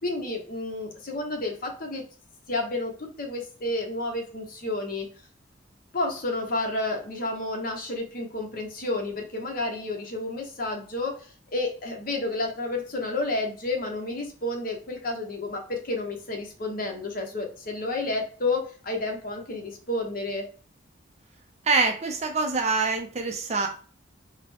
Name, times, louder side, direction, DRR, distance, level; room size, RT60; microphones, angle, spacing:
voice 1, 0.0-2.0 2.5-5.1 5.9-20.5, left 2 dB, 50° left, 2 dB, 0.8 m, -30 dB
voice 2, 21.6-23.7, right 4 dB, 35° right, 4 dB, 0.4 m, -25 dB
3.7 x 2.1 x 3.4 m, 0.39 s
head